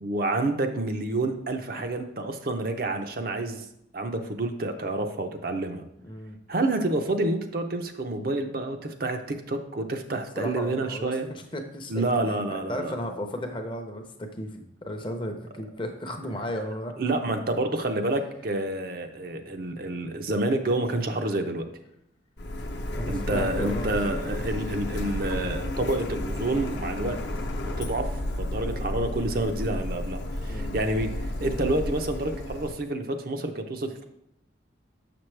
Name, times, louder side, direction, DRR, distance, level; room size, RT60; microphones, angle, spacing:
voice 1, 0.0-3.6 3.9-5.9 6.5-11.3 11.9-13.0 17.0-21.7 23.1-27.2 27.6-28.1 28.4-34.0, right 2 dB, 50° right, 6 dB, 0.6 m, -28 dB
voice 2, 6.0-6.4 10.4-16.9 17.2-17.3 22.9-23.9 30.5-30.8, equal, 25° left, 5 dB, 0.6 m, -35 dB
Printer, 22.4-32.7, left 1 dB, 65° left, 0.8 m, -32 dB
6.7 x 6.0 x 3.3 m, 0.77 s
head